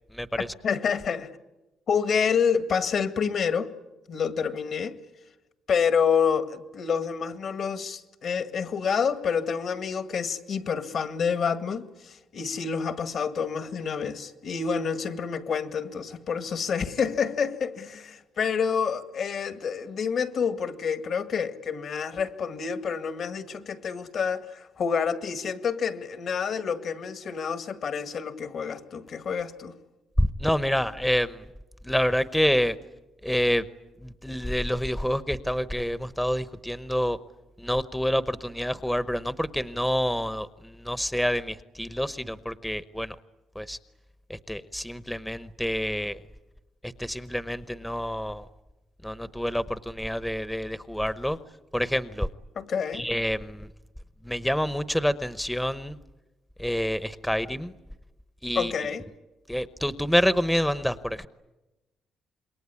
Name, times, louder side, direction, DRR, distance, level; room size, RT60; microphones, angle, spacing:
voice 1, 0.6-1.3 1.9-3.7 4.1-5.0 5.7-29.7 52.6-53.1 58.6-59.1, left 6 dB, 60° left, 1.9 m, -28 dB
voice 2, 30.2-31.4 31.8-32.8 33.2-33.6 34.0-37.2 37.6-43.1 43.6-43.8 44.3-46.2 47.0-48.4 49.0-51.4 51.7-52.3 52.9-53.7 54.2-56.0 56.6-57.7 58.4-58.7 59.5-61.3, equal, 5° left, 0.9 m, -27 dB
27.5 x 22.0 x 9.8 m
cardioid pair, 90°, 0 cm